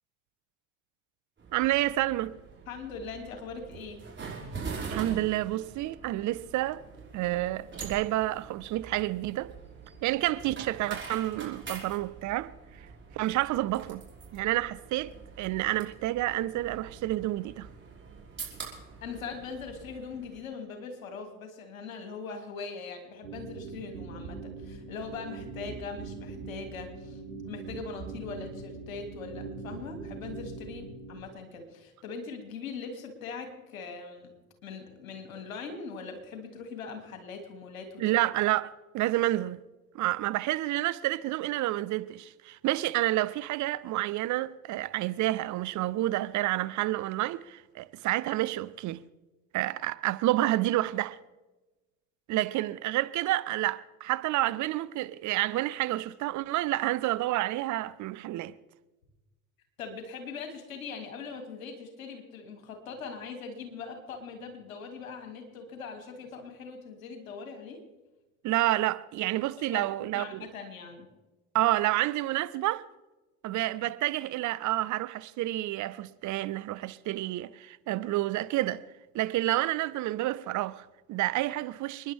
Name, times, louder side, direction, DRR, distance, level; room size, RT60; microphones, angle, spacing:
sound 1, 1.4-20.4, right 5 dB, 30° right, 5.4 m, -44 dB
voice 1, 1.5-2.3 4.9-6.8 7.1-9.5 10.0-12.5 13.1-14.0 14.3-15.1 15.4-17.7 38.0-39.6 39.9-49.0 49.5-51.2 52.3-58.5 68.4-70.5 71.5-72.8 73.4-78.8 79.1-82.1, right 16 dB, 45° right, 0.7 m, -29 dB
voice 2, 2.7-4.0 18.7-27.2 27.4-34.3 34.6-38.0 59.8-67.8 69.7-71.1, left 5 dB, 80° left, 2.6 m, -41 dB
sound 2, 23.2-31.2, right 4 dB, 80° right, 3.2 m, -42 dB
29.0 x 10.5 x 3.5 m
hypercardioid pair, 65°, 40 cm